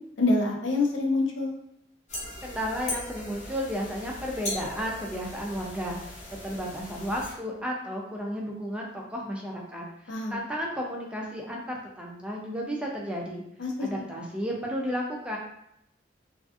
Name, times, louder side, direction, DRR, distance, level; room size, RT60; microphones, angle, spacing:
voice 1, 0.2-1.5 10.1-10.4 13.6-14.0, left 2 dB, 85° left, 0 dB, 0.5 m, -26 dB
sound 1, 2.1-7.3, left 1 dB, 40° left, 0.7 m, -39 dB
voice 2, 2.4-6.2 6.4-13.4 13.8-15.4, equal, 5° right, -2 dB, 0.3 m, -33 dB
2.5 x 2.4 x 2.4 m, 0.75 s
head